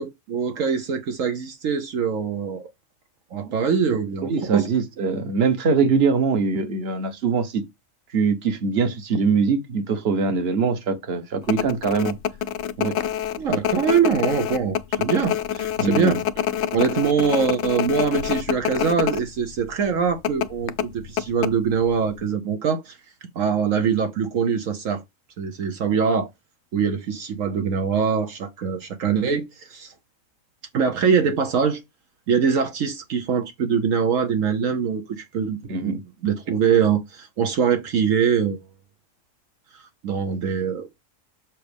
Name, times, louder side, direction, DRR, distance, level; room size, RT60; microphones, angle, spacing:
voice 1, 0.0-2.7 3.3-4.7 5.8-5.9 13.4-16.2 16.7-23.0 23.3-25.0 25.4-26.3 26.7-29.9 30.7-31.8 32.3-35.9 36.2-38.6 39.7-40.9, right 6 dB, 75° right, 1.2 m, -23 dB
voice 2, 4.2-7.6 8.1-12.1 12.8-13.0 15.8-16.2 35.7-36.0, right 5 dB, 50° right, 1.3 m, -22 dB
sound 1, 11.4-19.2 19.5-19.6 20.2-21.9 22.2-22.3, left 10 dB, 65° left, 0.8 m, -26 dB
7.4 x 5.1 x 3.4 m
omnidirectional pair, 1.4 m